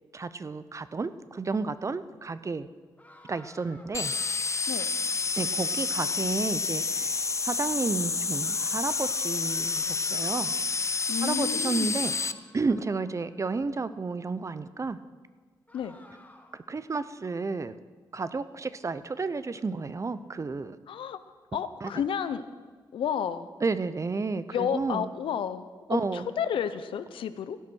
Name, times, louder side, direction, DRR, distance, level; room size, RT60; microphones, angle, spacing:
voice 1, 0.1-2.7 3.2-4.1 5.4-7.1 7.4-10.5 11.2-12.2 12.5-15.0 16.5-17.7 18.1-20.8 21.8-21.9 23.6-25.1 25.9-26.3, right 4 dB, 35° right, 14 dB, 0.6 m, -31 dB
sound 1, 3.0-6.4 8.4-13.7 15.7-16.7, left 1 dB, 15° left, 1.6 m, -55 dB
sound 2, 3.9-12.3, left 4 dB, 35° left, 0.5 m, -29 dB
voice 2, 11.1-12.0 15.7-16.0 20.9-21.2 21.5-22.4 22.9-23.5 24.5-27.6, left 8 dB, 85° left, 12 dB, 0.6 m, -31 dB
15.5 x 8.7 x 6.3 m, 1.5 s
cardioid pair, 65°, 9 cm